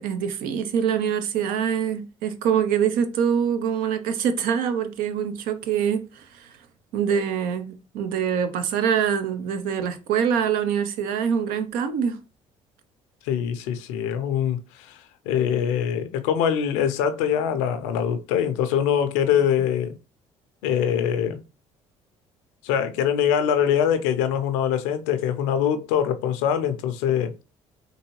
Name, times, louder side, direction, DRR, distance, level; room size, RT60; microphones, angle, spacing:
voice 1, 0.0-6.6 6.9-12.2, right 8 dB, 80° right, 0.6 m, -24 dB
voice 2, 13.2-19.9 20.6-21.4 22.6-27.3, left 8 dB, 90° left, 0.5 m, -23 dB
3.8 x 2.7 x 3.0 m
supercardioid pair, 60°, 15 cm